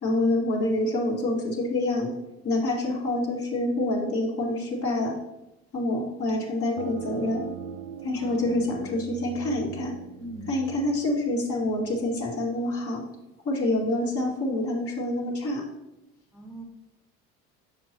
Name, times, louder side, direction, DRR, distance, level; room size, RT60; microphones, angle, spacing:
voice 1, 0.0-2.1 2.4-5.2 5.7-7.4 8.0-9.9 10.5-13.0 13.4-15.7, left 1 dB, 50° left, -3 dB, 2.5 m, -27 dB
sound 1, 6.8-12.2, right 8 dB, 90° right, 0.5 m, -41 dB
voice 2, 8.2-8.9 10.2-10.5 16.3-16.6, right 1 dB, ahead, -1 dB, 1.3 m, -42 dB
7.3 x 6.0 x 3.1 m, 0.91 s
supercardioid pair, 80°, 30 cm